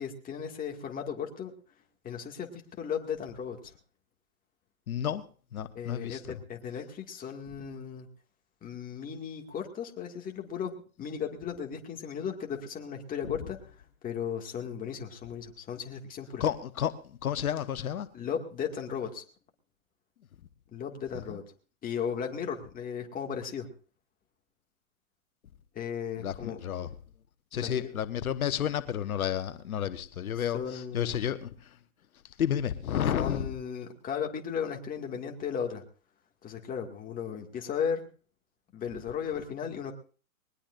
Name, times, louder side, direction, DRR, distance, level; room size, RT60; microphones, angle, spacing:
voice 1, 0.0-1.5 2.0-3.7 5.8-8.1 8.6-10.7 11.0-13.6 14.0-16.4 18.1-19.2 20.7-21.4 21.8-23.7 25.7-26.6 27.5-27.9 30.5-31.1 33.1-35.8 36.4-38.1 38.7-39.9, left 7 dB, 20° left, 2.2 m, -36 dB
voice 2, 4.9-5.3 5.5-6.4 13.3-13.4 16.4-18.1 21.3-21.4 26.2-26.9 27.5-31.8 32.2-33.5, left 9 dB, 85° left, 1.2 m, -31 dB
21.0 x 19.5 x 2.6 m
hypercardioid pair, 130°, 42 cm